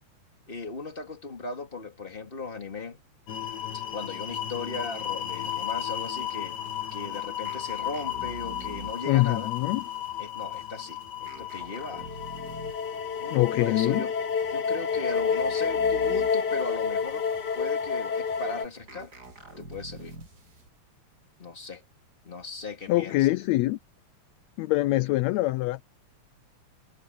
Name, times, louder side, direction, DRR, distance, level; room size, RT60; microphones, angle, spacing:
voice 1, 0.5-3.0 3.7-6.6 6.9-9.5 10.2-12.1 13.2-14.1 14.5-17.3 17.5-19.1 19.6-20.1 21.4-21.8 22.2-23.3, left 3 dB, 20° left, 2.7 m, -38 dB
sound 1, 3.3-18.7, left 7 dB, 60° left, 1.1 m, -31 dB
sound 2, 5.2-20.7, right 3 dB, 85° right, 9.3 m, -60 dB
sound 3, 7.4-9.2 11.3-12.9 15.1-16.6 18.9-20.5, right 1 dB, 30° right, 8.8 m, -45 dB
voice 2, 9.1-9.8 13.3-14.1 22.9-23.8 24.6-25.8, left 18 dB, 80° left, 1.7 m, -24 dB
omnidirectional pair, 3.4 m